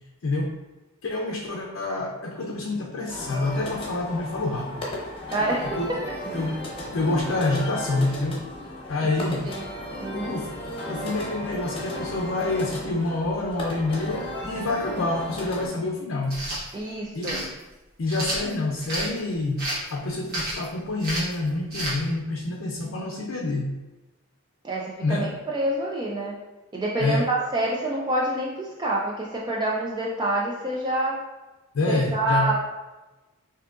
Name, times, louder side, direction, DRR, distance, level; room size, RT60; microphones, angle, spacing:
voice 1, 0.2-0.6 1.0-4.9 5.6-6.0 6.3-8.5 8.9-9.5 10.1-10.6 10.9-16.4 17.1-17.5 18.0-23.8 25.0-25.4 27.0-27.3 31.7-32.6, left 2 dB, 65° left, -1 dB, 0.5 m, -27 dB
sound 1, 3.1-15.7, left 1 dB, 25° left, 0.9 m, -35 dB
voice 2, 5.3-6.0 9.2-9.6 10.0-10.3 16.7-17.4 24.6-26.4 26.7-31.3 31.9-32.6, right 1 dB, 20° right, -3 dB, 0.4 m, -27 dB
sound 2, 16.2-16.6 17.2-17.5 18.1-19.1 19.6-19.9 20.3-20.7 21.0-21.3 21.7-22.0, right 1 dB, 50° right, 1.2 m, -30 dB
5.9 x 2.7 x 2.5 m, 1.1 s
head